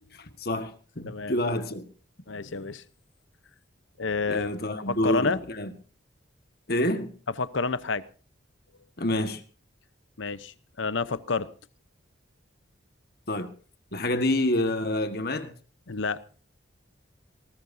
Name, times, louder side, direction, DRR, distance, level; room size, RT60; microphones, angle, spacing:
voice 1, 0.1-1.8 4.3-5.7 6.7-7.1 9.0-9.4 13.3-13.5 13.9-15.6, left 1 dB, 50° left, 1.6 m, -28 dB
voice 2, 1.1-1.4 2.3-2.8 4.0-4.5 4.9-5.4 7.4-8.0 10.2-11.5 15.9-16.2, left 4 dB, 80° left, 0.8 m, -29 dB
19.5 x 19.5 x 2.7 m
head